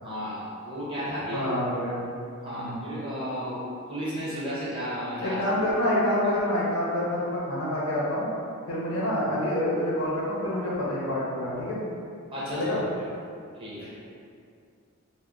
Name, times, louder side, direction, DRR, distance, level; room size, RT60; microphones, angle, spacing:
voice 1, 0.0-1.5 2.4-3.6 3.9-5.6 12.3-13.1 13.5-13.9, equal, 25° right, -9 dB, 0.6 m, -34 dB
voice 2, 1.2-2.0 2.5-2.9 5.2-8.3 8.7-11.8 12.5-12.8, left 1 dB, 75° left, -6 dB, 0.7 m, -27 dB
2.9 x 2.1 x 2.4 m, 2.4 s
head